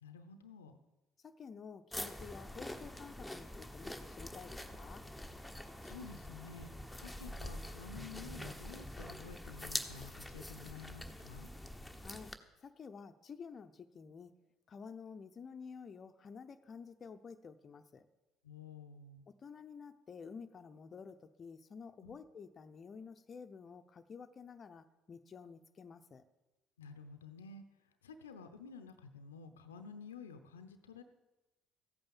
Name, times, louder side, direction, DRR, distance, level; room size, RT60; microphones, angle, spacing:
voice 1, 0.0-0.8 5.8-6.7 7.0-11.5 18.4-19.2 22.0-22.2 26.8-27.6 28.0-31.0, left 5 dB, 85° left, 9 dB, 0.7 m, -51 dB
voice 2, 1.2-5.1 12.0-14.3 14.7-18.1 19.4-26.2, left 5 dB, 40° left, 8 dB, 0.7 m, -51 dB
sound 1, 1.9-12.4, left 1 dB, 5° left, 1.2 m, -45 dB
14.5 x 8.7 x 7.3 m, 1.1 s
hypercardioid pair, 55°, 0 cm